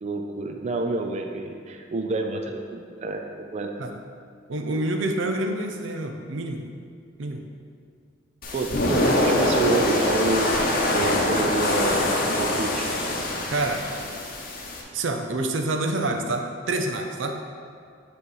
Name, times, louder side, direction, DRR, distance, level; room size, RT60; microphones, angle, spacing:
voice 1, 0.0-3.2 3.5-3.7 8.5-10.5 10.9-12.9, right 2 dB, 35° right, 3 dB, 0.4 m, -28 dB
voice 2, 4.5-6.7 7.2-7.4 13.5-13.8 14.9-17.4, right 2 dB, 90° right, 4 dB, 0.6 m, -27 dB
sound 1, 8.4-14.8, left 1 dB, 50° left, 0.8 m, -24 dB
6.5 x 3.0 x 5.5 m, 2.2 s
head